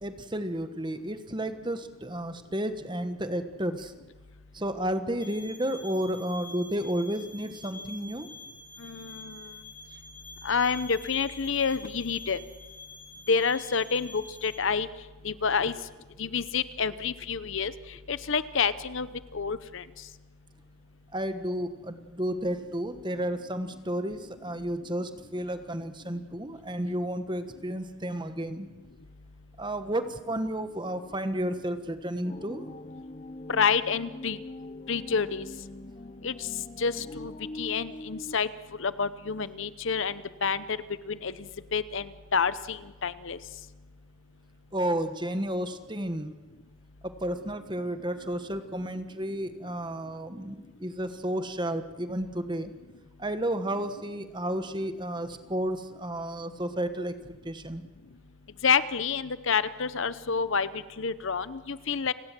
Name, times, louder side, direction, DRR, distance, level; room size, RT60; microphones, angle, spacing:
voice 1, 0.0-3.9 4.5-8.3 21.1-28.7 29.6-32.7 44.7-46.3 47.0-52.7 53.2-57.8, right 1 dB, 20° right, 9 dB, 1.3 m, -32 dB
sound 1, 5.2-14.6, left 3 dB, 10° left, 2.3 m, -47 dB
voice 2, 8.8-9.4 10.4-12.4 13.3-14.9 15.2-15.7 16.2-17.7 18.1-19.1 19.3-19.8 33.5-34.4 34.9-35.4 36.2-36.3 36.8-37.3 37.6-38.5 38.8-40.8 41.1-41.3 41.7-43.4 58.6-62.1, left 5 dB, 60° left, 15 dB, 0.8 m, -28 dB
sound 2, 32.2-38.4, left 1 dB, 30° left, 0.6 m, -43 dB
29.5 x 18.0 x 7.5 m, 1.2 s
head